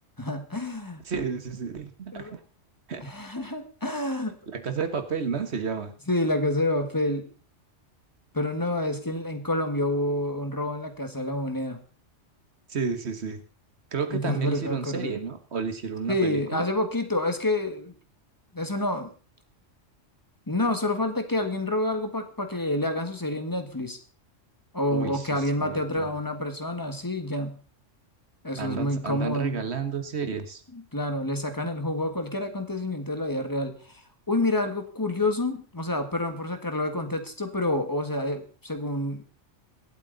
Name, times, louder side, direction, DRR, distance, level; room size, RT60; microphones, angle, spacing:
voice 1, 0.2-1.0 2.1-2.3 3.0-4.3 6.1-7.3 8.3-11.8 14.1-15.1 16.1-17.9 18.5-19.1 20.5-24.0 24.7-27.6 28.4-29.7 30.7-39.2, left 1 dB, 15° left, 6 dB, 1.7 m, -28 dB
voice 2, 1.0-2.4 2.9-3.0 4.5-5.9 12.7-13.4 13.9-16.7 24.9-26.1 28.6-30.6, right 5 dB, 60° right, 8 dB, 1.6 m, -31 dB
23.5 x 8.4 x 4.0 m, 0.38 s
omnidirectional pair, 1.3 m